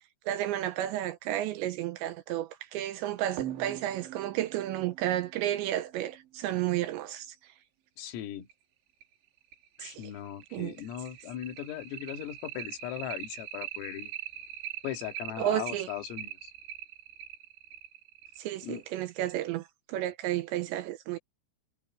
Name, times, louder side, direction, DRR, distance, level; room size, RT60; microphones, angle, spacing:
voice 1, 0.3-7.4 9.8-10.0 10.5-10.7 15.4-15.9 18.4-21.2, right 13 dB, 80° right, 2.7 m, -32 dB
sound 1, 3.4-6.5 8.0-8.1 8.5-8.6 9.0-9.1 9.5-19.6, right 11 dB, 65° right, 4.5 m, -42 dB
voice 2, 8.0-8.5 9.8-14.1 14.8-16.5 18.6-18.8, left 11 dB, 90° left, 4.8 m, -38 dB
omnidirectional pair, 5.8 m